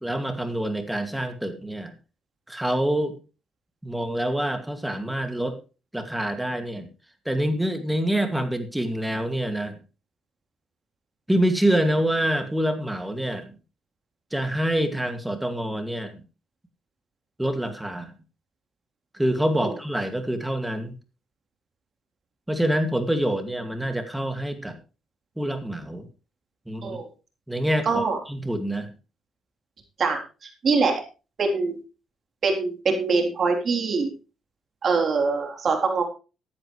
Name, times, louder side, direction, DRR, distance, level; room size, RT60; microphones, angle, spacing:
voice 1, 0.0-1.9 2.5-3.2 3.8-5.6 5.9-6.9 7.3-9.8 11.3-13.6 14.3-16.2 17.4-18.1 19.1-20.9 22.5-24.8 25.4-26.1 26.7-27.0 27.5-28.9, right 1 dB, 5° right, 7 dB, 2.3 m, -26 dB
voice 2, 27.9-28.2 30.0-31.0 31.4-31.8 32.4-34.1 34.8-36.0, right 4 dB, 50° right, 3 dB, 3.6 m, -24 dB
14.5 x 10.5 x 3.2 m, 0.32 s
cardioid pair, 90°, 0 cm